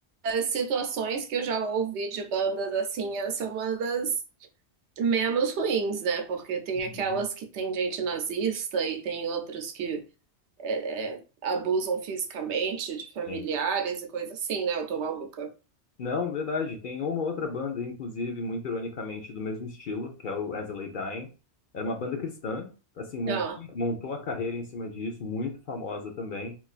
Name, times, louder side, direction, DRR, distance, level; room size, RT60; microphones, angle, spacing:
voice 1, 0.2-4.1 5.0-10.0 10.6-15.5 23.3-23.6, right 5 dB, 85° right, 0.9 m, -29 dB
voice 2, 6.8-7.2 13.3-13.4 16.0-21.3 21.7-22.7 23.0-26.6, left 3 dB, 55° left, 0.7 m, -33 dB
3.8 x 2.4 x 2.4 m
omnidirectional pair, 1.1 m